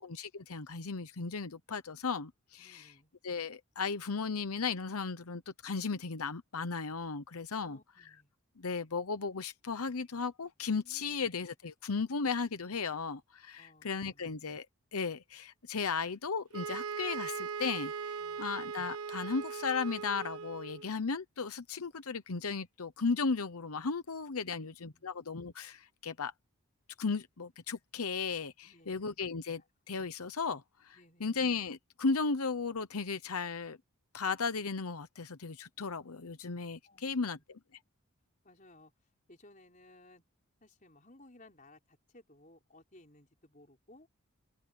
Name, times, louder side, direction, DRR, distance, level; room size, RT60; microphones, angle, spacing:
voice 1, 0.0-2.9 3.2-7.8 8.6-14.7 14.9-26.3 27.0-29.6 29.9-33.8 34.1-37.6, left 4 dB, 85° left, 0.9 m, -35 dB
voice 2, 2.6-3.1 7.5-8.3 10.8-11.3 13.6-14.3 18.2-18.4 24.4-25.1 28.6-29.2 29.5-29.6 30.9-31.4 36.8-37.4 38.4-38.9 39.3-40.2 40.6-44.1, left 1 dB, 35° left, 4.8 m, -60 dB
sound 1, 16.5-20.9, right 6 dB, 85° right, 1.4 m, -39 dB
open air
head